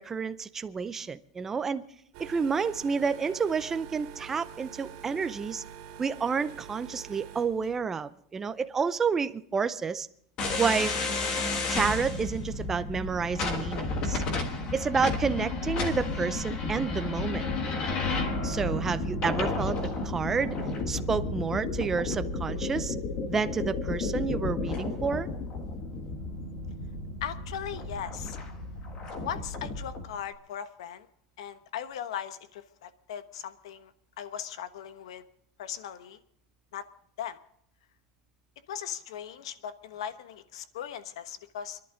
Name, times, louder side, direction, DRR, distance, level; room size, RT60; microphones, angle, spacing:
voice 1, 0.0-1.8 2.2-5.6 6.0-10.1 10.6-11.0 11.7-14.2 14.7-17.5 18.4-19.8 20.0-20.6 20.9-23.0 23.3-25.3, right 5 dB, 10° right, 0.5 m, -30 dB
sound 1, 2.1-7.8, right 8 dB, 45° right, 3.4 m, -46 dB
sound 2, 10.4-30.1, left 3 dB, 30° left, 1.5 m, -32 dB
voice 2, 27.2-28.4 29.2-31.1 31.4-35.2 35.6-36.2 36.7-36.9 37.2-37.4 38.7-41.8, left 9 dB, 85° left, 1.2 m, -38 dB
27.0 x 11.0 x 3.8 m
supercardioid pair, 175°, 3 cm